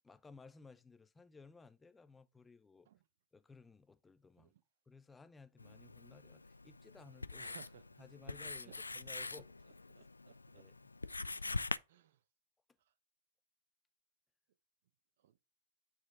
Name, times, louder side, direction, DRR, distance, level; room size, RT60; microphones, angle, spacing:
voice 1, 0.0-2.9 3.3-4.5 4.9-7.5 8.0-9.5 10.5-10.9, left 4 dB, 10° left, 0.6 m, -58 dB
Writing, 5.6-11.8, left 3 dB, 90° left, 0.3 m, -44 dB
voice 2, 7.4-7.9 8.7-8.8 9.3-9.4 10.0-10.7 11.4-12.2 15.2-15.4, right 11 dB, 60° right, 0.8 m, -60 dB
9.4 x 4.3 x 3.5 m
figure-of-eight pair, 105°, 0 cm